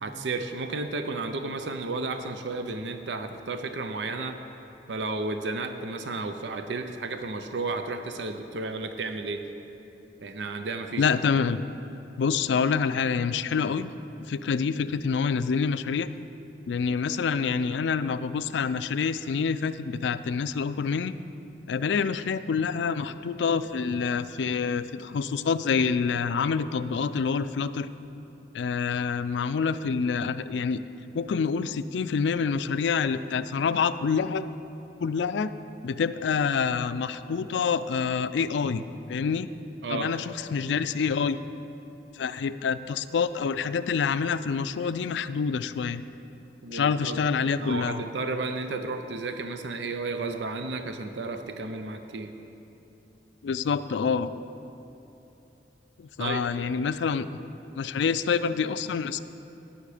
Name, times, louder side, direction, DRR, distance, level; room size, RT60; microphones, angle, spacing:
voice 1, 0.0-4.4 4.9-9.4 10.2-11.1 39.8-40.1 46.6-47.2 47.6-52.3 56.2-56.5, right 3 dB, 90° right, 7 dB, 0.6 m, -33 dB
voice 2, 11.0-11.6 12.2-13.9 14.2-16.1 16.7-21.1 21.7-27.9 28.5-30.8 31.1-34.5 35.0-35.5 35.8-39.5 39.9-41.4 42.1-46.0 46.7-48.0 53.4-54.3 56.0-57.4 57.8-59.2, left 5 dB, 90° left, 13 dB, 0.4 m, -27 dB
16.5 x 5.8 x 5.0 m, 3.0 s
head